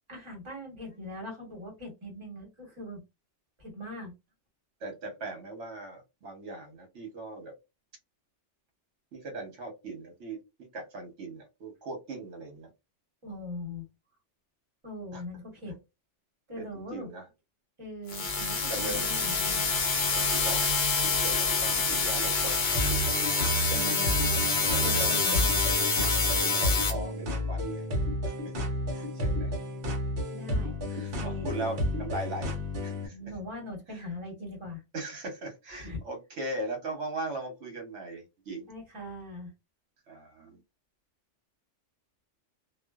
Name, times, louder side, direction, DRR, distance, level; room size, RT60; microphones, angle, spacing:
voice 1, 0.1-3.0 3.6-4.1 13.2-13.8 14.8-15.8 16.5-17.1 17.8-19.7 23.7-25.6 30.3-31.5 33.1-34.8 35.7-36.0 38.7-39.5, left 1 dB, 25° right, 1.1 m, -41 dB
voice 2, 4.8-7.5 9.1-10.4 10.7-12.7 15.1-15.2 15.7-15.8 16.6-17.2 18.7-19.1 20.1-20.8 21.0-22.5 24.5-25.2 26.1-27.9 28.2-28.3 28.9-29.5 30.9-32.5 32.8-33.3 33.9-34.0 34.9-38.7 40.1-40.6, right 2 dB, 75° right, 1.1 m, -39 dB
sound 1, 18.1-26.9, left 4 dB, 50° left, 0.7 m, -27 dB
sound 2, 22.7-33.1, left 1 dB, 55° right, 0.9 m, -31 dB
2.4 x 2.2 x 2.3 m
omnidirectional pair, 1.2 m